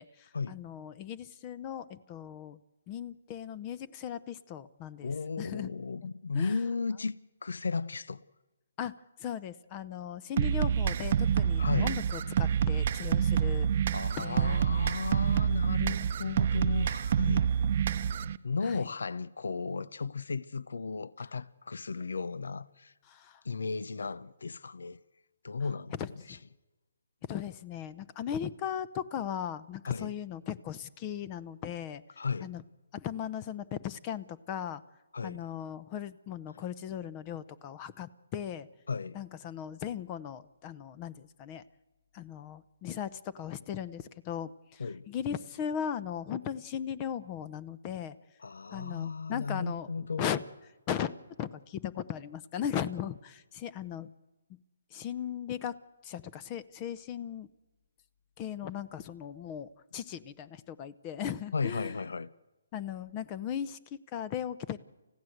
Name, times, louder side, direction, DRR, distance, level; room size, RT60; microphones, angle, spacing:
voice 1, 0.0-2.6 2.9-5.1 5.4-6.1 6.3-6.6 8.8-8.9 9.2-13.7 14.2-14.9 18.6-18.8 23.1-23.4 26.0-26.4 27.2-32.0 32.4-32.6 32.9-34.8 35.2-38.7 39.1-41.6 42.1-48.2 48.7-50.4 50.9-54.1 54.9-55.8 56.0-57.5 58.4-61.9 62.7-64.8, left 9 dB, 25° left, 0.7 m, -38 dB
voice 2, 5.0-7.1 7.4-8.2 11.6-12.0 13.9-17.5 17.8-18.0 18.4-22.9 23.4-25.0 25.4-26.0 26.3-26.4 29.9-30.1 32.2-32.5 35.1-35.4 38.9-39.2 44.8-45.1 48.4-50.2 61.5-62.3, left 4 dB, 80° left, 0.7 m, -34 dB
sound 1, 10.4-18.4, right 8 dB, 45° right, 0.8 m, -27 dB
29.5 x 15.5 x 8.0 m
hypercardioid pair, 155°, 0 cm